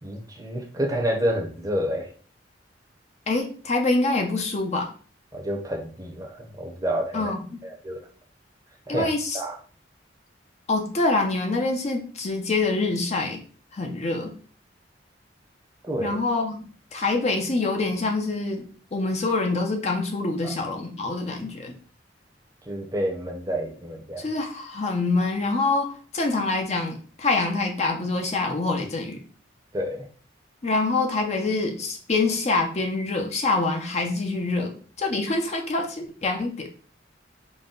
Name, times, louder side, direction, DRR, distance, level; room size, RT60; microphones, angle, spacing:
voice 1, 0.0-2.1 5.3-7.3 7.6-8.0 8.9-9.1 9.3-9.5 15.9-16.2 20.4-20.5 22.7-24.3 29.7-30.0, equal, 20° right, 1 dB, 0.7 m, -29 dB
voice 2, 3.3-4.9 7.1-7.6 8.9-9.4 10.7-13.4 13.7-14.3 16.0-16.6 16.9-18.6 18.9-21.7 24.2-29.2 30.6-36.7, left 3 dB, 35° left, 2 dB, 0.5 m, -25 dB
4.0 x 2.2 x 3.7 m, 0.42 s
head